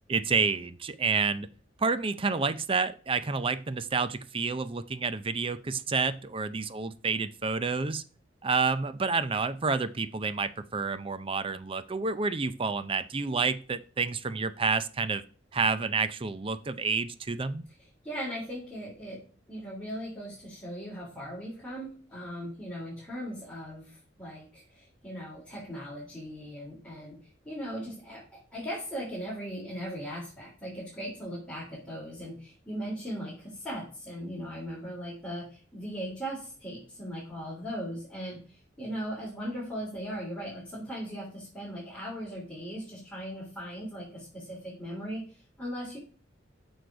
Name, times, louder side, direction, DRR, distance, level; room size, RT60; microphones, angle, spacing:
voice 1, 0.1-1.5 1.8-8.0 8.4-15.2 15.5-17.7, right 4 dB, 30° right, 13 dB, 0.5 m, -29 dB
voice 2, 18.0-27.2 27.4-46.0, equal, 5° left, -8 dB, 3.5 m, -38 dB
8.1 x 6.3 x 5.1 m, 0.40 s
head